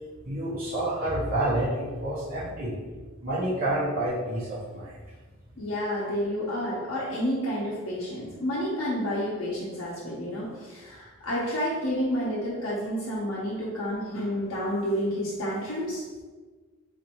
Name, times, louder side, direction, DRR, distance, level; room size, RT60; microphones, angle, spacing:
voice 1, 0.2-2.8 3.2-5.0, right 1 dB, 45° right, -10 dB, 0.9 m, -28 dB
voice 2, 5.6-16.2, equal, 75° left, -7 dB, 0.7 m, -30 dB
4.2 x 2.6 x 2.9 m, 1.4 s
head